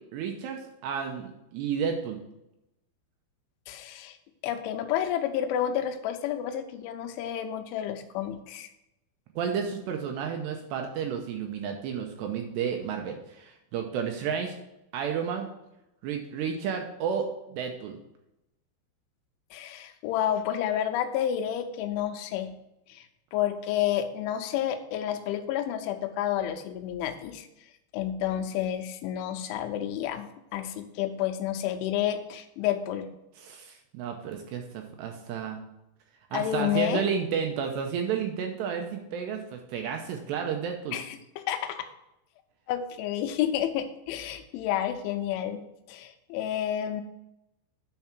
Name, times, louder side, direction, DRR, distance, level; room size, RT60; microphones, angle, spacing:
voice 1, 0.1-2.2 9.4-14.6 14.9-15.5 16.0-18.0 33.4-35.6 36.3-41.0, right 7 dB, 80° right, 4 dB, 2.6 m, -32 dB
voice 2, 3.7-4.2 4.4-8.7 19.5-22.5 22.9-23.1 23.3-27.5 27.9-30.3 30.5-33.1 36.3-37.0 40.9-41.9 42.7-47.0, left 10 dB, 80° left, 7 dB, 3.1 m, -30 dB
9.4 x 4.5 x 6.0 m, 0.89 s
omnidirectional pair, 5.5 m